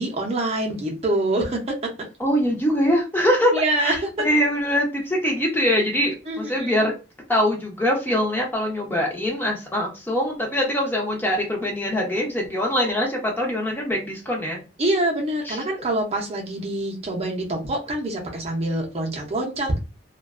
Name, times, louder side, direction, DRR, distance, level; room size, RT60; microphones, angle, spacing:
voice 1, 0.0-1.9 3.5-4.3 6.3-6.9 14.8-19.8, right 1 dB, 35° right, 0 dB, 0.5 m, -25 dB
voice 2, 2.2-3.5 3.8-6.9 7.3-14.6 15.5-15.6, equal, 10° left, -1 dB, 0.5 m, -23 dB
2.4 x 2.2 x 2.3 m, 0.31 s
head